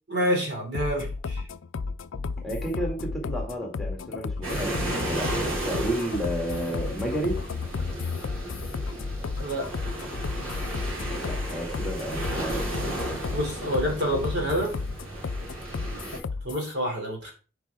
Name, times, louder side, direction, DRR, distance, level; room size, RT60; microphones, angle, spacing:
voice 1, 0.1-1.4 9.3-9.9 13.3-14.7 16.4-17.3, equal, 55° right, 1 dB, 2.7 m, -28 dB
sound 1, 0.7-16.7, left 4 dB, 75° left, 0.4 m, -33 dB
voice 2, 2.4-7.4 11.2-13.0, right 1 dB, ahead, 0 dB, 1.9 m, -32 dB
sound 2, 4.4-16.2, right 1 dB, 90° right, 2.8 m, -34 dB
10.5 x 4.8 x 3.5 m, 0.36 s
head